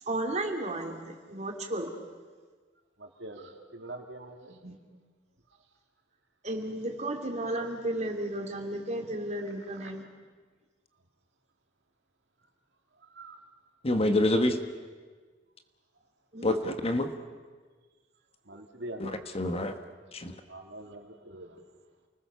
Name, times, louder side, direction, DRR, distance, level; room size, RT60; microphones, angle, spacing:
voice 1, 0.1-1.9 4.5-4.8 6.4-10.0 16.3-16.6, right 1 dB, 40° right, 3 dB, 3.0 m, -34 dB
voice 2, 3.0-4.5 9.8-9.9 13.2-13.4 18.5-19.3 20.5-21.5, right 1 dB, 70° right, 3 dB, 2.9 m, -44 dB
voice 3, 13.8-14.6 16.4-17.1 19.0-19.7 20.1-20.3, left 1 dB, 35° left, 8 dB, 1.4 m, -27 dB
29.0 x 20.0 x 7.0 m, 1.5 s
head